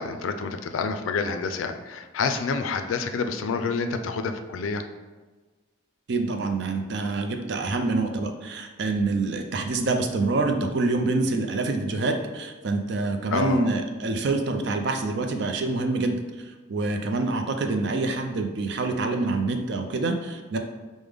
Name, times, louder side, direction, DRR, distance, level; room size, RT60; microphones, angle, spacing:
voice 1, 0.0-4.8 13.3-13.7, left 4 dB, 80° left, 7 dB, 0.4 m, -28 dB
voice 2, 6.1-20.6, right 3 dB, 55° right, 5 dB, 0.4 m, -26 dB
4.9 x 2.1 x 3.4 m, 1.3 s
head